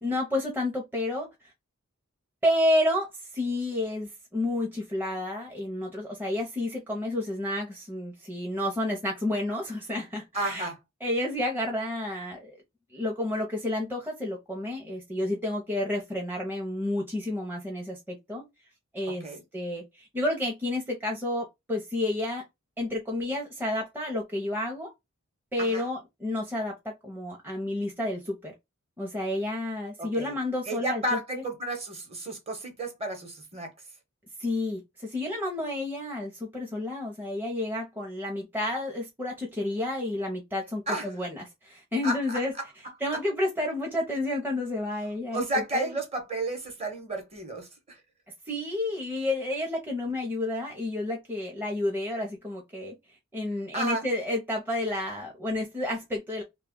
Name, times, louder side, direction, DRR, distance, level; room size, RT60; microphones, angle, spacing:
voice 1, 0.0-1.3 2.4-3.1 3.3-10.7 11.0-12.6 12.9-18.4 18.9-22.4 22.8-24.9 25.5-28.5 29.0-31.4 34.4-42.5 43.0-45.4 45.7-45.9 48.5-52.9 53.3-56.4, left 1 dB, 10° right, 0.7 m, -30 dB
voice 2, 10.3-10.8 19.1-19.4 25.6-25.9 30.0-30.4 30.7-33.7 40.9-41.1 42.0-42.7 43.1-43.2 45.3-48.0 53.7-54.0, right 1 dB, 30° right, 1.0 m, -32 dB
2.8 x 2.3 x 3.6 m
head